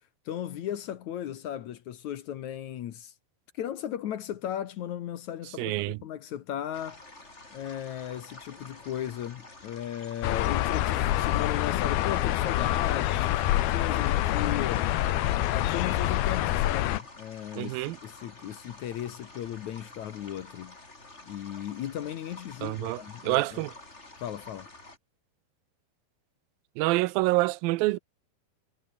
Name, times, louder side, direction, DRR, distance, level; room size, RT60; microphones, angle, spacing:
voice 1, 0.3-3.1 3.6-5.7 6.0-7.0 7.5-14.9 15.5-20.8 21.3-23.6 24.2-24.7, left 11 dB, 65° left, 2.2 m, -36 dB
voice 2, 5.6-6.0 17.6-18.0 22.6-23.7 26.8-28.0, right 20 dB, 80° right, 2.3 m, -27 dB
sound 1, 6.7-25.0, left 2 dB, 15° left, 4.1 m, -49 dB
sound 2, 10.2-17.0, left 14 dB, 80° left, 3.1 m, -26 dB
omnidirectional pair, 4.4 m